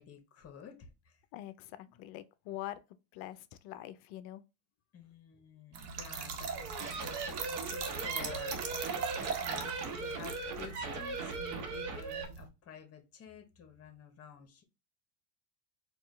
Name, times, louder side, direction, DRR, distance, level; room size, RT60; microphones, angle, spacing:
voice 1, 0.0-1.2 4.9-8.9 9.4-14.6, left 7 dB, 30° left, 1.1 m, -51 dB
voice 2, 1.3-2.8 3.1-4.4, left 13 dB, 55° left, 0.6 m, -44 dB
Trickle dribble / Fill (with liquid), 5.7-12.5, right 6 dB, 80° right, 1.0 m, -40 dB
sound 1, 6.5-12.2, right 4 dB, 40° right, 1.0 m, -39 dB
4.4 x 2.4 x 3.2 m
supercardioid pair, 110°, 46 cm